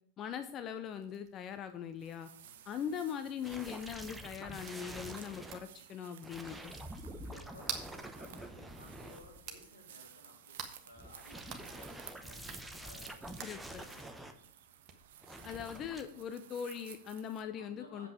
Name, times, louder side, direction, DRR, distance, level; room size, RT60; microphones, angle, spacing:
voice 1, 0.2-2.3 2.7-6.8 13.4-13.8 15.4-18.1, left 8 dB, 30° left, 10 dB, 0.6 m, -41 dB
sound 1, 0.8-17.2, right 7 dB, 30° right, 1.3 m, -52 dB
sound 2, 2.0-17.4, right 10 dB, 55° right, 0.8 m, -56 dB
voice 2, 2.3-3.0 7.2-13.3 13.7-14.3 17.5-18.1, left 2 dB, 80° left, -3 dB, 3.3 m, -58 dB
sound 3, 3.4-5.6 6.2-9.7 10.9-14.3 15.2-16.0, right 1 dB, 5° right, 0.9 m, -47 dB
8.0 x 7.6 x 4.9 m, 0.62 s
figure-of-eight pair, 90°, 0 cm